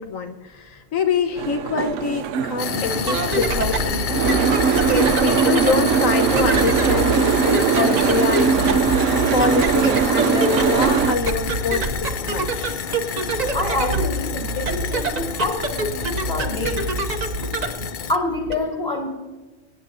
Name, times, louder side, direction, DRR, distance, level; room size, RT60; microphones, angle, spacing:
voice 1, 0.0-12.8, left 5 dB, 85° left, 6 dB, 1.4 m, -26 dB
Boat Water vehicle, 1.4-11.2, right 7 dB, 75° right, 0.9 m, -21 dB
sound 1, 2.6-18.2, left 7 dB, 55° left, 0.6 m, -29 dB
sound 2, 2.9-18.5, right 3 dB, 40° right, 0.7 m, -27 dB
voice 2, 13.5-16.8 18.1-19.1, left 2 dB, 30° left, -2 dB, 3.6 m, -26 dB
25.5 x 9.0 x 2.6 m, 1.2 s
omnidirectional pair, 1.4 m